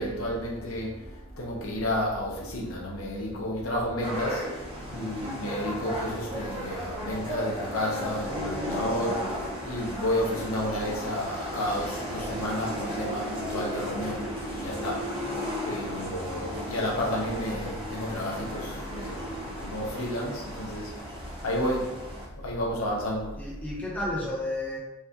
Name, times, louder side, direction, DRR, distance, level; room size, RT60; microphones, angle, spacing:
voice 1, 0.0-15.3 15.6-22.0 22.4-23.4, equal, 75° left, -1 dB, 0.8 m, -31 dB
sound 1, 4.0-22.3, equal, 25° right, 0.8 m, -35 dB
voice 2, 23.4-24.8, left 1 dB, 5° left, -6 dB, 0.9 m, -33 dB
4.6 x 2.5 x 2.8 m, 0.98 s
head